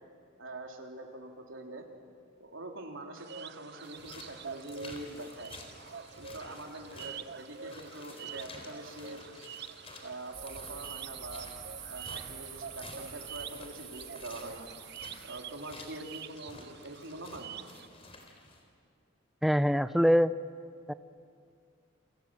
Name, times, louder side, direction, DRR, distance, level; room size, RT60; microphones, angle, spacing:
voice 1, 0.4-1.9 2.4-5.5 6.2-9.2 10.0-11.5 11.9-14.7 15.2-17.5, right 2 dB, 85° right, 2 dB, 3.6 m, -44 dB
sound 1, 3.1-17.9, right 7 dB, 55° right, 0.8 m, -47 dB
sound 2, 3.8-18.6, left 2 dB, 30° left, 3.9 m, -52 dB
sound 3, 10.3-16.2, right 8 dB, 40° right, 2.2 m, -47 dB
voice 2, 19.4-20.3 20.9-21.0, equal, ahead, 13 dB, 0.6 m, -24 dB
29.0 x 27.0 x 7.6 m, 2.3 s
head